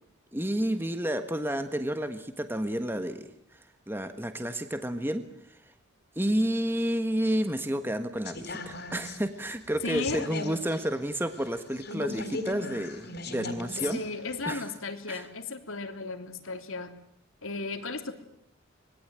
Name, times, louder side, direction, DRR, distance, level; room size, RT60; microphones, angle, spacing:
voice 1, 0.3-5.7 6.1-14.0 14.5-14.6 15.1-15.3, right 1 dB, 10° right, 9 dB, 1.4 m, -31 dB
sound 1, 8.2-14.0 14.3-14.4, left 3 dB, 50° left, 3.9 m, -38 dB
voice 2, 9.8-10.3 13.9-16.9 17.4-18.1, left 3 dB, 70° left, 7 dB, 3.1 m, -35 dB
26.0 x 21.5 x 9.0 m, 0.71 s
head